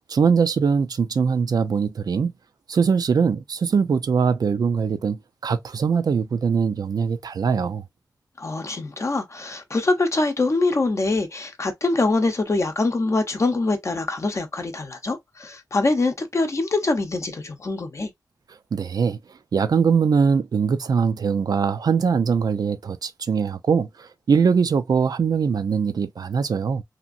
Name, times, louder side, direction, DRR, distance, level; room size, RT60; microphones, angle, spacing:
voice 1, 0.1-2.3 2.7-7.8 18.7-19.2 19.5-26.8, right 6 dB, 65° right, 0.4 m, -22 dB
voice 2, 8.4-18.1, left 3 dB, 45° left, 0.6 m, -24 dB
2.8 x 2.5 x 2.4 m
wide cardioid pair, 70°, 7 cm